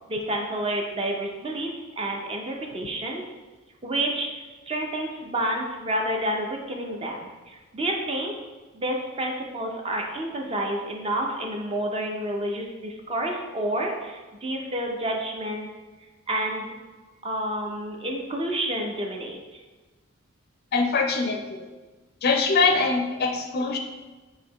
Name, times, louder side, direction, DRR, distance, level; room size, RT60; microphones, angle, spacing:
voice 1, 0.1-3.2 3.8-4.3 4.7-8.3 8.7-15.7 16.3-16.7 17.2-19.6, right 1 dB, 25° right, 1 dB, 0.5 m, -29 dB
voice 2, 20.7-21.7 22.2-23.8, left 4 dB, 50° left, 4 dB, 0.5 m, -23 dB
6.6 x 2.7 x 3.0 m, 1.2 s
head